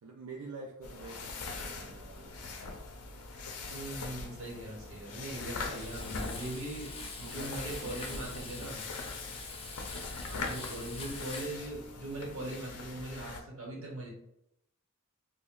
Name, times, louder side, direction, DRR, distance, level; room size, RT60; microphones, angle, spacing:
voice 1, 0.0-2.8 5.9-6.4 6.9-7.5 7.8-8.8 10.5-11.2, right 3 dB, 85° right, -1 dB, 0.4 m, -49 dB
sound 1, 0.8-13.4, left 3 dB, 85° left, 0.5 m, -42 dB
voice 2, 3.7-6.9 7.2-8.8 10.3-14.1, right 1 dB, 65° right, -2 dB, 1.0 m, -40 dB
Frying (food), 5.6-11.6, left 4 dB, 25° left, 0.4 m, -44 dB
2.6 x 2.1 x 3.6 m, 0.79 s
head